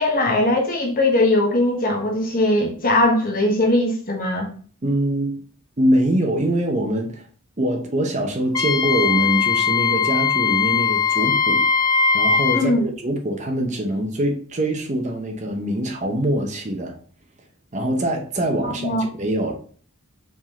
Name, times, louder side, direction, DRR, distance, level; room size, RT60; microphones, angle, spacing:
voice 1, 0.0-4.5 12.5-12.8 18.6-19.0, left 1 dB, 40° left, 1.1 m, -20 dB
voice 2, 4.8-5.3 5.8-7.3 7.6-11.6 12.1-17.0 17.7-19.5, right 1 dB, 35° right, 0.7 m, -23 dB
Wind instrument woodwind instrument, 8.5-12.7, left 6 dB, 15° left, 0.3 m, -20 dB
4.8 x 3.6 x 2.9 m
head